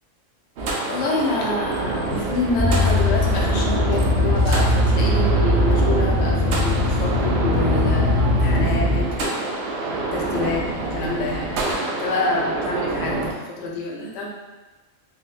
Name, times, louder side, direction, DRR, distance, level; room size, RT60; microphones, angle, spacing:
sound 1, 0.6-13.3, right 2 dB, 65° right, 0.8 m, -27 dB
voice 1, 0.9-11.5 12.0-14.3, left 2 dB, 75° left, -2 dB, 0.9 m, -27 dB
sound 2, 2.6-9.0, left 1 dB, 30° right, 0.7 m, -20 dB
4.0 x 2.0 x 2.4 m, 1.2 s
omnidirectional pair, 1.3 m